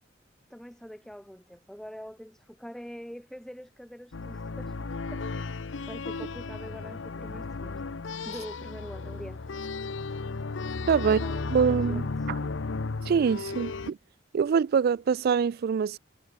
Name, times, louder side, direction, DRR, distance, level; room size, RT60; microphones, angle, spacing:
voice 1, 0.5-4.8 5.1-7.8 8.2-9.5 11.0-12.3, equal, 5° left, 0.8 m, -44 dB
sound 1, 4.1-13.9, left 3 dB, 70° left, 0.7 m, -34 dB
voice 2, 10.9-11.2 11.5-12.4 13.1-14.0 14.3-16.0, right 6 dB, 55° right, 0.3 m, -24 dB
head